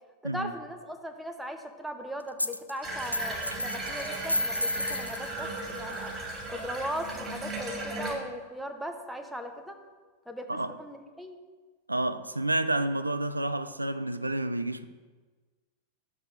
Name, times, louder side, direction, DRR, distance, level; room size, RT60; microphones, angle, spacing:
voice 1, 0.2-6.1 6.5-9.8 10.3-11.3, equal, ahead, 0.9 m, -38 dB
sound 1, 2.4-2.7 3.0-7.7, left 1 dB, 90° left, 0.3 m, -34 dB
Water tap faucet / Bathtub (filling or washing), 2.8-8.1, right 2 dB, 20° right, 2.6 m, -36 dB
voice 2, 11.9-14.8, right 1 dB, 85° right, 0.4 m, -29 dB
13.0 x 7.0 x 2.5 m
figure-of-eight pair, 90°, 0 cm